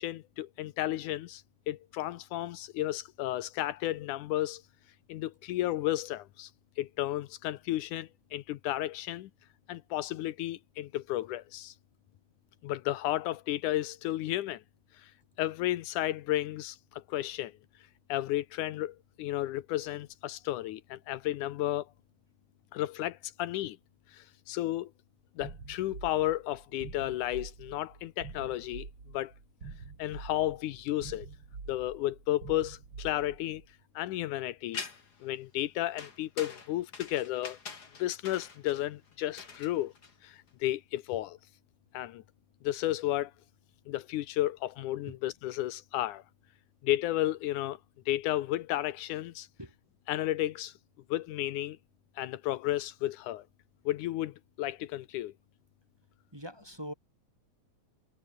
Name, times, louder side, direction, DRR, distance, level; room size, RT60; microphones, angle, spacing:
voice 1, 0.0-4.6 5.1-6.5 6.8-9.3 9.7-11.7 12.6-14.6 15.0-15.1 15.4-17.5 18.1-21.9 22.7-23.8 24.1-24.9 25.4-28.9 29.1-29.3 30.0-31.3 31.7-33.6 34.0-34.8 35.2-37.6 38.0-39.9 40.2-41.4 41.9-42.2 42.6-43.3 43.9-46.2 46.8-47.8 48.1-49.5 50.1-50.7 51.1-51.8 52.2-53.4 53.9-55.3, left 14 dB, 80° left, 2.4 m, -33 dB
sound 1, 25.4-33.7, right 4 dB, 40° right, 4.3 m, -46 dB
sound 2, 34.7-35.2 36.0-40.5, left 5 dB, 35° left, 2.9 m, -44 dB
voice 2, 56.3-56.9, equal, 5° right, 4.7 m, -42 dB
omnidirectional pair, 3.5 m